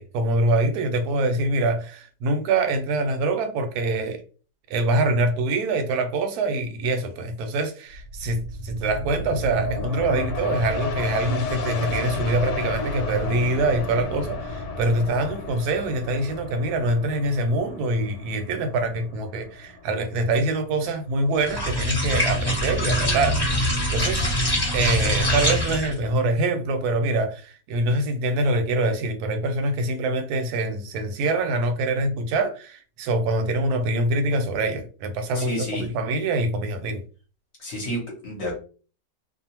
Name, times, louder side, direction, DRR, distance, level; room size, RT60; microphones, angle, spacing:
voice 1, 0.0-4.2 4.7-24.2 24.7-37.0, right 2 dB, 70° right, 1.0 m, -24 dB
sound 1, 7.9-21.2 21.6-21.7, left 2 dB, 75° left, 1.2 m, -32 dB
sound 2, 21.4-26.0, equal, 15° left, 1.3 m, -23 dB
voice 2, 35.3-35.9 37.6-38.6, equal, 45° left, 1.0 m, -30 dB
2.6 x 2.3 x 2.9 m
omnidirectional pair, 1.9 m